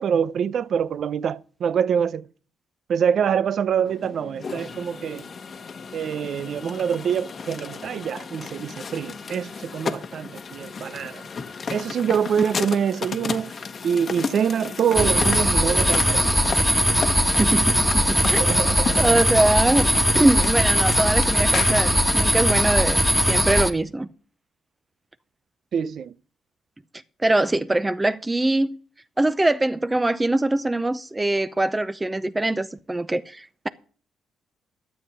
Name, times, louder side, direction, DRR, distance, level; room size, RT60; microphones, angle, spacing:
voice 1, 0.0-2.3 2.9-5.2 5.9-11.2 11.7-13.5 13.8-16.3 18.2-19.2 25.7-26.1, right 7 dB, 60° right, 0.6 m, -25 dB
sound 1, 3.8-23.4, left 5 dB, 45° left, 1.2 m, -34 dB
sound 2, 15.0-23.7, equal, ahead, 1.6 m, -20 dB
voice 2, 17.4-18.5 19.0-23.0 23.3-24.1 27.2-28.8 29.2-33.7, right 2 dB, 15° right, 0.7 m, -23 dB
12.5 x 7.8 x 6.8 m
cardioid pair, 90°, 0 cm